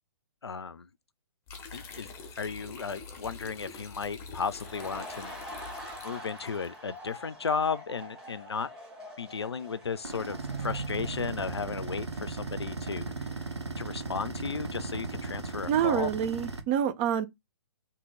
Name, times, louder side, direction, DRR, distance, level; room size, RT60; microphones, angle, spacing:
voice 1, 0.4-0.9 1.7-5.7 6.0-8.7 9.2-13.5 13.8-16.1, left 5 dB, 75° left, 0.5 m, -35 dB
sound 1, 1.5-6.7, left 4 dB, 20° left, 0.9 m, -46 dB
sound 2, 4.5-13.4 13.7-13.9, left 1 dB, 5° right, 1.8 m, -46 dB
sound 3, 10.0-16.6, right 3 dB, 80° right, 1.1 m, -36 dB
voice 2, 15.7-17.3, right 9 dB, 25° right, 0.5 m, -27 dB
3.7 x 2.9 x 4.6 m
figure-of-eight pair, 125°, 14 cm